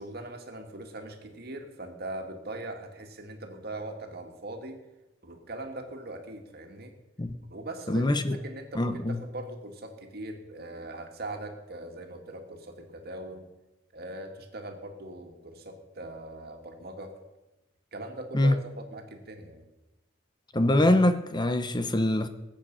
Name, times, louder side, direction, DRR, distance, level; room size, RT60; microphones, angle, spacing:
voice 1, 0.0-4.8 5.2-6.9 7.5-8.1 8.4-13.5 13.9-17.1 17.9-19.6, right 1 dB, 55° right, 3 dB, 2.2 m, -41 dB
voice 2, 7.9-8.4 8.8-9.2 18.3-18.5 20.5-22.3, left 1 dB, 25° left, 10 dB, 0.7 m, -24 dB
21.0 x 8.5 x 5.5 m, 0.98 s
head